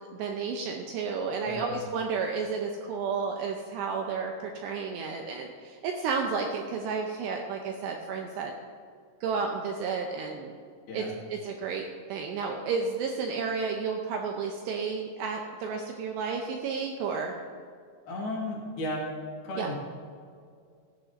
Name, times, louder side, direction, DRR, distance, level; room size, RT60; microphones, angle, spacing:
voice 1, 0.0-8.5 9.2-10.5 10.9-11.0 11.3-17.3 19.6-19.7, right 5 dB, 85° right, 2 dB, 2.5 m, -32 dB
voice 2, 1.4-1.8 10.9-11.2 18.1-19.1 19.4-19.7, left 1 dB, 60° left, -3 dB, 3.5 m, -34 dB
16.5 x 12.0 x 2.7 m, 2.3 s
omnidirectional pair, 5.7 m